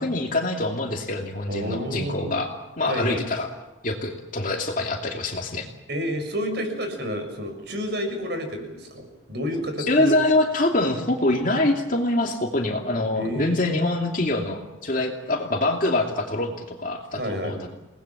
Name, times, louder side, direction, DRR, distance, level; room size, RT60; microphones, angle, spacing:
voice 1, 0.0-3.5 3.8-5.7 9.8-17.7, left 2 dB, 45° left, 1 dB, 2.7 m, -25 dB
voice 2, 1.5-2.3 2.9-3.2 5.9-10.2 13.1-13.8 17.2-17.5, equal, 55° right, 6 dB, 6.5 m, -30 dB
29.0 x 19.5 x 7.4 m, 1.1 s
head